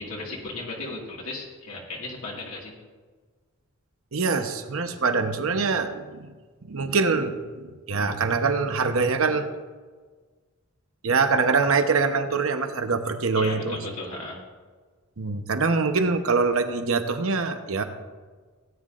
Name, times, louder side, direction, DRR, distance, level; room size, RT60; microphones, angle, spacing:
voice 1, 0.0-2.8 13.3-14.4, left 2 dB, 70° left, -3 dB, 2.0 m, -36 dB
voice 2, 4.1-6.3 6.6-9.5 11.0-13.8 15.2-17.8, right 4 dB, 65° right, 7 dB, 0.9 m, -24 dB
17.5 x 9.4 x 2.5 m, 1.4 s
head